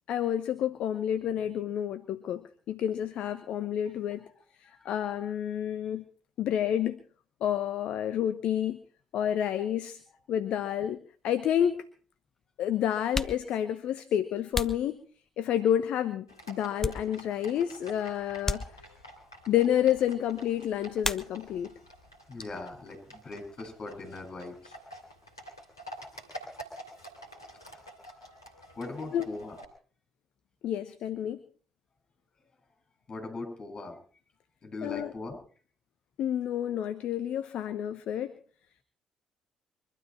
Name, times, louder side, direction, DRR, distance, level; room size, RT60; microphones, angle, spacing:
voice 1, 0.1-4.3 4.8-6.0 6.4-7.0 7.4-8.8 9.1-10.0 10.3-11.9 12.6-15.0 15.4-18.6 19.5-21.7 29.1-29.3 30.6-31.4 34.8-35.1 36.2-38.3, left 10 dB, 60° left, 12 dB, 0.9 m, -29 dB
voice 2, 4.6-4.9 19.4-19.5 22.3-24.7 27.5-29.6 33.1-34.0 34.6-35.4, left 2 dB, 35° left, 5 dB, 6.8 m, -41 dB
sound 1, 11.2-11.3 12.3-12.4 13.0-15.6 16.1-17.5 17.8-18.0 18.4-19.2 21.0-21.8 22.0-22.7 23.0-25.2, left 2 dB, 20° left, 1.3 m, -37 dB
Livestock farm animals working animals, 16.3-29.6, equal, 90° left, 2.7 m, -49 dB
23.5 x 12.5 x 4.4 m, 0.43 s
figure-of-eight pair, 45°, 2 cm